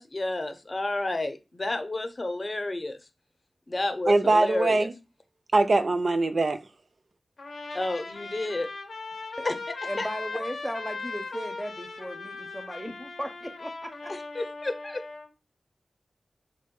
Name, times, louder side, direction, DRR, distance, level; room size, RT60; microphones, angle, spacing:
voice 1, 0.0-3.0 3.7-4.9 7.7-8.7 9.4-9.5 10.0-10.1 14.4-15.0, left 2 dB, 45° left, 0.6 m, -30 dB
voice 2, 4.1-4.9 5.5-6.6, right 2 dB, 60° right, 0.4 m, -22 dB
Trumpet, 7.4-15.3, left 3 dB, 85° left, 0.7 m, -38 dB
voice 3, 9.8-14.1, equal, ahead, 0.5 m, -37 dB
3.6 x 2.1 x 3.6 m
cardioid pair, 45°, 0 cm